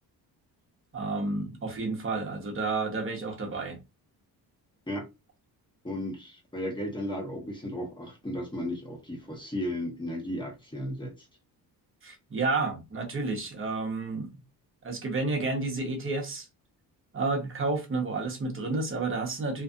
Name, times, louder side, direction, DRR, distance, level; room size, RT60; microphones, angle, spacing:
voice 1, 0.9-3.8 12.0-14.3 14.8-16.5 17.1-19.6, right 3 dB, 35° right, 0.9 m, -30 dB
voice 2, 5.8-11.1, left 1 dB, 10° left, 1.0 m, -34 dB
2.5 x 2.4 x 2.3 m
cardioid pair, 110°, 38 cm